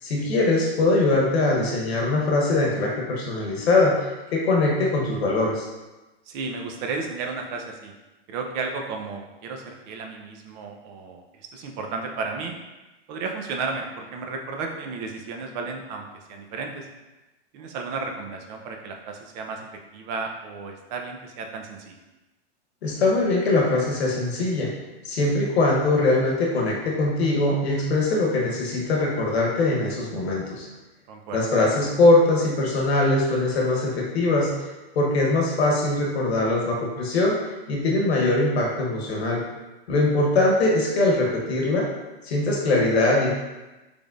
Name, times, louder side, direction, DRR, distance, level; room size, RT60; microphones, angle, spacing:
voice 1, 0.0-5.7 22.8-24.7 25.0-30.7 31.3-34.5 34.9-37.4 37.7-39.4 39.9-41.9 42.2-43.3, left 2 dB, 85° left, -2 dB, 1.1 m, -22 dB
voice 2, 6.3-7.9 8.3-12.6 13.1-16.9 17.5-19.6 19.9-22.0 31.1-31.4, right 4 dB, 45° right, 3 dB, 0.7 m, -33 dB
4.8 x 3.4 x 2.5 m, 1.1 s
hypercardioid pair, 135°, 31 cm